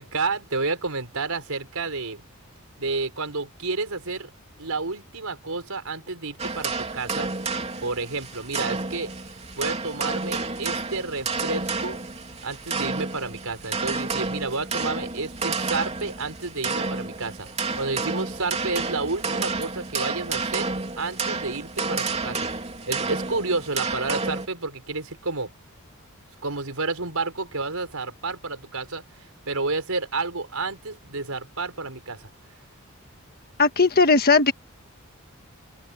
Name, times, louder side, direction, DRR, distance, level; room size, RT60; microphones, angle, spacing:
voice 1, 0.0-2.2 2.8-4.3 4.6-7.3 7.8-9.1 9.5-12.0 12.4-17.5 17.7-20.7 21.0-22.5 22.9-25.5 26.4-29.0 29.5-32.3, right 3 dB, 90° right, 4.8 m, -30 dB
sound 1, 6.4-24.5, right 4 dB, 30° right, 3.2 m, -30 dB
voice 2, 33.6-34.5, left 4 dB, 45° left, 1.5 m, -17 dB
open air
head